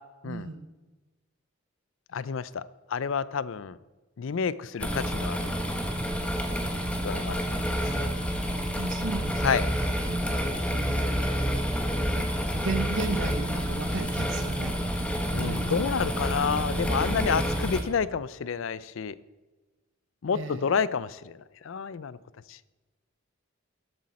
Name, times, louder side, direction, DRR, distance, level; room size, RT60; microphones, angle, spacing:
voice 1, 0.2-0.7 8.8-9.7 10.1-11.2 12.2-14.7 15.3-15.8 20.3-20.7, right 3 dB, 70° right, 7 dB, 0.9 m, -35 dB
voice 2, 2.1-2.6 2.9-3.8 4.2-5.5 7.0-7.4 9.4-9.6 15.3-19.1 20.2-21.4 21.6-22.2 22.5-22.6, left 6 dB, 75° left, 18 dB, 0.4 m, -29 dB
sound 1, 4.8-17.8, equal, 5° left, 1.2 m, -29 dB
13.0 x 8.2 x 4.2 m, 1.2 s
head